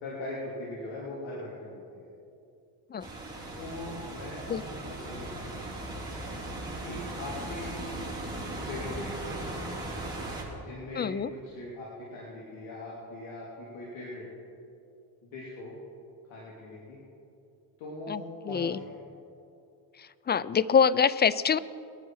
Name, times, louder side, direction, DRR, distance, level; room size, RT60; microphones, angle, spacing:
voice 1, 0.0-2.1 3.5-4.6 4.9-6.0 6.8-8.1 8.6-9.7 10.6-14.3 15.2-15.7 16.3-17.0 17.8-19.0, left 2 dB, 70° left, -5 dB, 3.1 m, -41 dB
sound 1, 3.0-10.4, right 2 dB, 10° right, 4.2 m, -38 dB
voice 2, 11.0-11.3 18.1-18.8 20.0-21.6, left 7 dB, 25° left, 18 dB, 0.3 m, -25 dB
22.0 x 9.8 x 4.7 m, 2.7 s
supercardioid pair, 65°, 49 cm